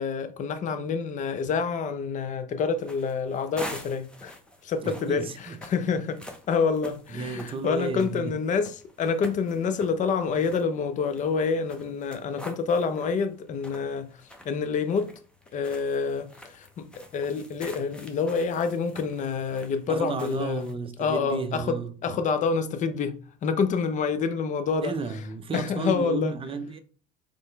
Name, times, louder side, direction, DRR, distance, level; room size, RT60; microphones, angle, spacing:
voice 1, 0.0-4.3 4.6-6.2 6.5-8.7 9.0-14.1 14.4-15.1 15.5-20.6 21.0-21.8 22.0-24.9 25.5-26.3, left 5 dB, 35° left, 0.6 m, -27 dB
sound 1, 2.8-20.7, left 1 dB, 5° left, 0.8 m, -47 dB
voice 2, 4.8-5.6 7.1-8.3 19.9-22.2 24.8-26.8, right 4 dB, 25° right, 0.7 m, -33 dB
4.2 x 3.3 x 3.3 m
hypercardioid pair, 90°, 21 cm